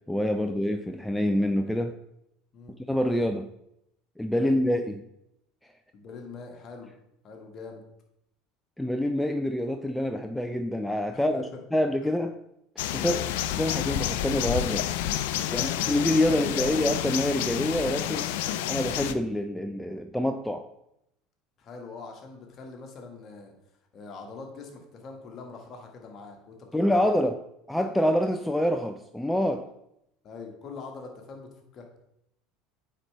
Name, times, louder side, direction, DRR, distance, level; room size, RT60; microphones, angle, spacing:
voice 1, 0.1-2.0 2.9-3.5 4.2-5.0 5.6-5.7 8.8-11.4 11.7-12.4 12.9-13.1 13.6-14.9 15.5-18.3 18.7-20.7 26.7-27.4 27.7-29.7, left 1 dB, 5° left, 7 dB, 0.4 m, -26 dB
voice 2, 5.9-6.9 7.2-7.8 11.1-11.6 13.0-13.2 15.4-16.7 21.6-23.5 23.9-27.0 30.2-32.0, left 4 dB, 40° left, 2 dB, 1.5 m, -43 dB
sound 1, 12.8-19.1, left 12 dB, 65° left, 0.4 m, -29 dB
8.9 x 4.3 x 3.3 m, 0.80 s
hypercardioid pair, 75°, 0 cm